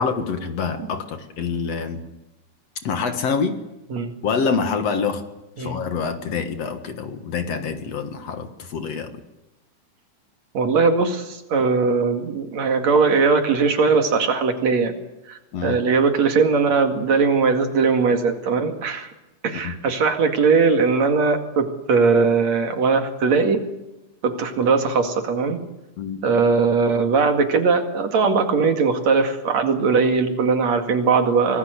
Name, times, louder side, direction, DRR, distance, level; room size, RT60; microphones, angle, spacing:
voice 1, 0.0-2.0 2.8-3.6 4.2-5.3 5.6-9.1 15.5-15.8 19.6-19.8 26.0-26.2, left 5 dB, 60° left, 8 dB, 2.5 m, -26 dB
voice 2, 10.5-14.9 15.3-19.1 19.4-23.6 24.2-25.6 26.2-31.6, right 4 dB, 60° right, 5 dB, 3.3 m, -20 dB
25.5 x 19.0 x 8.1 m, 0.98 s
omnidirectional pair, 3.6 m